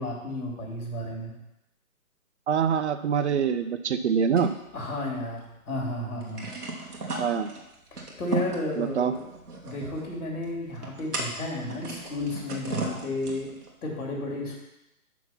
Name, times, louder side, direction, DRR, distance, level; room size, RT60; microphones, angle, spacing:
voice 1, 0.0-1.3 3.3-3.4 4.7-6.5 7.9-9.2 9.6-13.5 13.8-14.6, left 1 dB, 75° left, -1 dB, 3.1 m, -33 dB
voice 2, 2.5-4.5 7.2-7.5 8.8-9.1, right 7 dB, 50° right, 10 dB, 0.6 m, -25 dB
sound 1, 4.4-5.5 5.8-5.9 6.2-13.7, right 3 dB, 90° right, 2.0 m, -36 dB
6.1 x 5.7 x 5.7 m, 0.91 s
hypercardioid pair, 145°, 44 cm